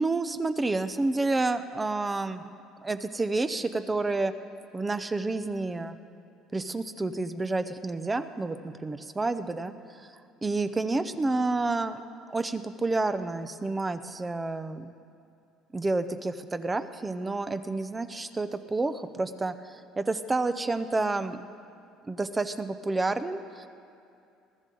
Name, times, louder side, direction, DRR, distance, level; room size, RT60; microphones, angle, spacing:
voice 1, 0.0-2.4 2.8-4.3 4.7-6.0 6.5-9.7 10.4-12.0 12.3-14.9 15.7-21.4 22.1-23.7, right 3 dB, 15° right, 11 dB, 0.5 m, -29 dB
21.0 x 13.5 x 3.9 m, 2.5 s
cardioid pair, 145°, 0 cm